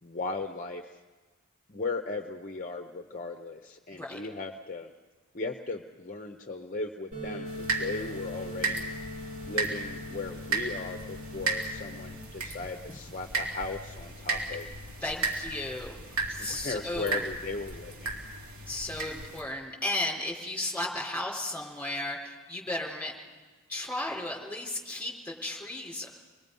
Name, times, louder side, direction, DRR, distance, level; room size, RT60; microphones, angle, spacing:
voice 1, 0.0-1.0 1.7-4.9 5.3-8.8 9.5-14.7 16.4-18.1, left 3 dB, 35° left, 5 dB, 0.8 m, -37 dB
sound 1, 7.1-12.1, left 1 dB, 45° right, 7.4 m, -41 dB
sound 2, 7.5-19.4, right 3 dB, 70° right, 4.0 m, -35 dB
voice 2, 15.0-15.9 16.3-17.2 18.7-23.1 23.7-26.1, left 1 dB, 10° left, -2 dB, 3.9 m, -34 dB
28.5 x 21.5 x 5.4 m, 1.4 s
head